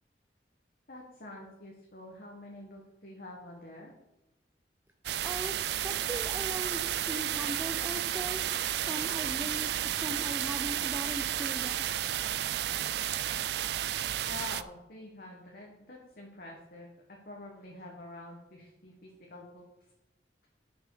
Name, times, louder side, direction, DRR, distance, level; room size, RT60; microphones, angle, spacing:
voice 1, 0.9-3.9 14.3-19.6, left 2 dB, 55° left, -1 dB, 1.6 m, -47 dB
sound 1, 5.0-14.6, right 11 dB, 65° right, 0.4 m, -32 dB
voice 2, 5.2-5.6 5.8-8.4 8.7-11.8, right 1 dB, 10° right, 5 dB, 0.6 m, -39 dB
11.5 x 6.1 x 4.9 m, 0.93 s
head